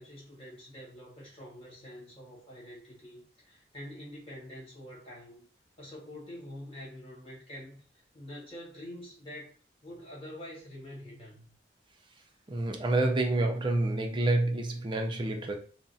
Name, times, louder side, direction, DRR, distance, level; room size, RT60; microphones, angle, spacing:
voice 1, 0.0-5.4 5.8-9.5 9.8-11.5, left 1 dB, 30° left, 1.3 m, -46 dB
voice 2, 12.5-15.6, right 2 dB, 25° right, 0.5 m, -28 dB
2.5 x 2.0 x 3.8 m
head